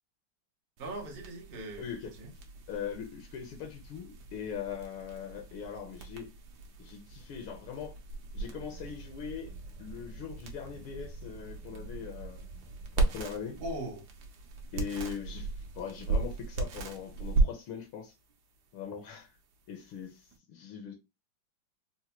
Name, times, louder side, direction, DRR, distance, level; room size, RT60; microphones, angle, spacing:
sound 1, 0.8-20.4, right 3 dB, 65° right, 1.0 m, -37 dB
voice 1, 0.8-2.3 13.6-14.1, right 1 dB, 80° right, 0.5 m, -40 dB
voice 2, 1.8-2.1 2.7-6.3 6.8-8.0 8.3-9.5 9.8-12.5 13.0-13.6 14.7-18.1 18.7-19.3 19.7-20.9, left 7 dB, 80° left, 1.5 m, -41 dB
4.4 x 2.1 x 2.8 m
omnidirectional pair, 2.4 m